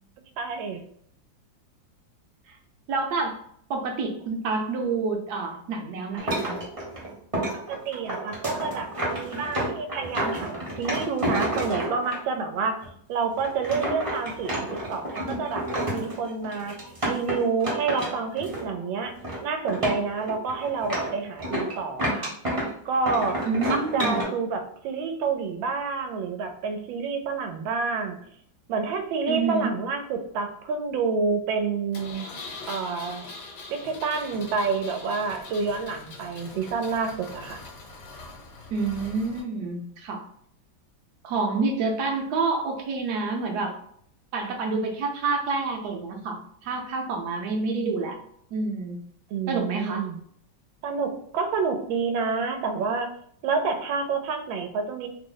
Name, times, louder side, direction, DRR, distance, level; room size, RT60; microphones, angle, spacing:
voice 1, 0.4-0.8 7.5-12.8 13.1-16.8 17.0-22.3 22.8-23.4 23.7-28.2 28.7-32.3 32.7-33.2 33.7-37.6 49.3-50.2 50.8-53.1 53.4-55.1, right 4 dB, 85° right, 6 dB, 1.4 m, -28 dB
voice 2, 2.9-3.4 3.7-6.6 23.4-24.3 29.3-29.7 38.7-40.2 41.2-43.7 44.3-48.2 48.5-49.0 49.5-50.1, right 4 dB, 65° right, 2 dB, 1.1 m, -28 dB
sound 1, 6.2-12.2 12.8-12.9 13.3-18.8 19.1-19.4 19.7-22.7 23.1-24.2, right 1 dB, 25° right, 0.7 m, -30 dB
Engine, 31.9-39.4, left 3 dB, 65° left, 1.3 m, -42 dB
3.2 x 2.0 x 3.7 m, 0.66 s
omnidirectional pair, 2.1 m